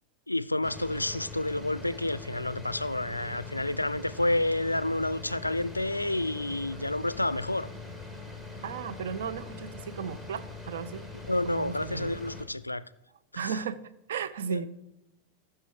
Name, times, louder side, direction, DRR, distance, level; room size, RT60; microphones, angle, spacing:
voice 1, 0.3-7.7 11.3-12.8 13.3-13.5 14.5-14.7, left 2 dB, 85° left, 0.3 m, -29 dB
sound 1, 0.6-12.4, left 3 dB, 10° right, 1.7 m, -43 dB
voice 2, 8.6-11.0 11.4-12.2 13.4-13.8 14.1-14.7, right 7 dB, 60° right, 0.6 m, -35 dB
14.5 x 5.7 x 4.7 m
figure-of-eight pair, 90°, 0 cm